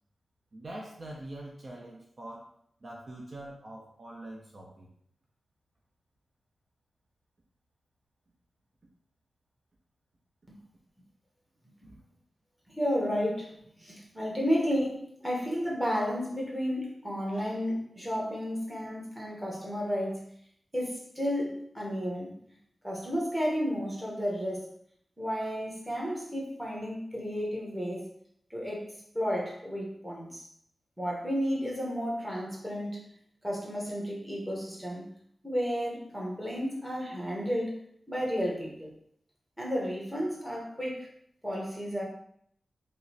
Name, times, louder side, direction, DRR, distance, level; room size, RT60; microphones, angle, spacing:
voice 1, 0.5-2.5 2.8-4.9 11.8-12.0, right 1 dB, 40° right, -2 dB, 0.5 m, -44 dB
voice 2, 12.7-20.3 20.7-22.4 22.8-24.7 25.2-28.1 28.5-30.4 31.0-33.0 33.4-35.1 35.4-37.7 38.1-38.9 39.6-41.1 41.4-42.0, equal, 5° right, -3 dB, 1.0 m, -32 dB
4.9 x 2.0 x 2.8 m, 0.67 s
wide cardioid pair, 120°, 0 cm